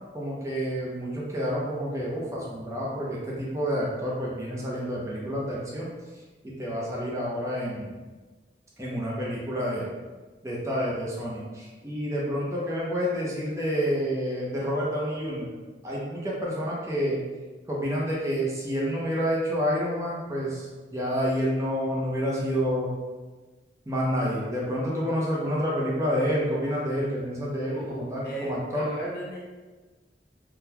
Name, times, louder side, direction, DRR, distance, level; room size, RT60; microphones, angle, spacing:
voice 1, 0.1-5.9 6.4-7.9 8.8-9.9 10.4-15.5 15.8-17.2 17.7-22.9 23.9-28.9, equal, 15° right, -5 dB, 0.6 m, -29 dB
voice 2, 27.7-29.4, right 1 dB, 60° left, -5 dB, 0.8 m, -36 dB
3.6 x 2.2 x 2.8 m, 1.3 s
head